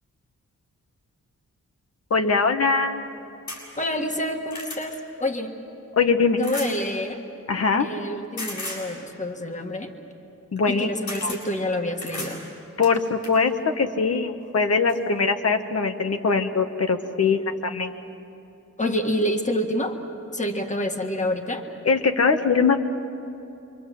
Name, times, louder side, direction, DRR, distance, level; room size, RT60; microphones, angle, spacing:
voice 1, 2.1-3.0 6.0-6.4 7.5-7.9 10.5-10.9 11.2-11.3 12.8-17.9 21.8-22.8, left 4 dB, 55° left, 6 dB, 1.3 m, -22 dB
sound 1, 3.5-3.6 4.2-4.8 6.4-6.7 8.4-8.8 10.6-10.7 11.1-11.4 12.0-12.4 12.8-13.4 14.4-14.5 14.9-15.0, left 2 dB, 75° left, 7.4 m, -35 dB
voice 2, 3.8-5.5 6.4-7.2 7.8-9.9 10.7-12.4 18.8-20.0 20.3-21.6, left 1 dB, 25° left, 4 dB, 1.7 m, -27 dB
27.5 x 24.0 x 7.7 m, 2.9 s
wide cardioid pair, 170°, 30 cm